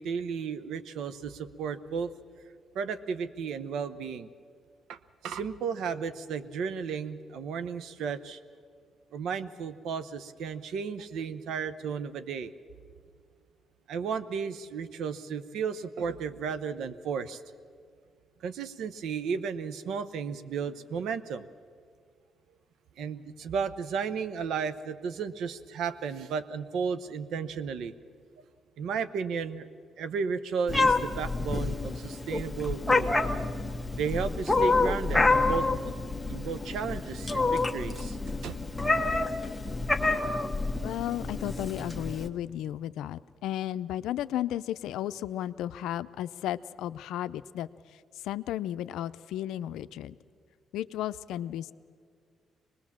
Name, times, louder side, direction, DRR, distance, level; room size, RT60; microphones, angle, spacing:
voice 1, 0.0-2.1 2.7-4.3 4.9-8.4 9.1-12.5 13.9-17.4 18.4-21.4 23.0-27.9 28.8-29.7 30.0-33.1 33.9-35.7 36.3-38.2 38.4-38.6, right 6 dB, 75° right, 13 dB, 0.9 m, -33 dB
Meow, 30.7-42.3, left 3 dB, 10° left, 1.3 m, -28 dB
voice 2, 40.8-50.2 50.7-51.7, left 12 dB, 85° left, 14 dB, 0.5 m, -34 dB
24.0 x 20.0 x 7.4 m, 2.1 s
cardioid pair, 90°, 0 cm